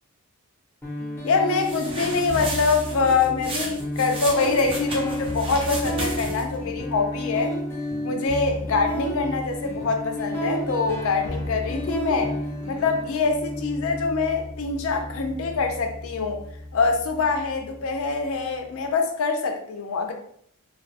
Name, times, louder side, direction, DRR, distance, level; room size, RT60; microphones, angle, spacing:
sound 1, 0.8-18.8, equal, 10° left, 0.7 m, -32 dB
voice 1, 1.2-7.5 8.0-12.3 12.7-16.4 16.7-20.1, left 4 dB, 65° left, 4 dB, 0.5 m, -24 dB
sound 2, 1.5-6.6, right 2 dB, 25° right, 0.5 m, -34 dB
2.3 x 2.2 x 2.7 m, 0.65 s
head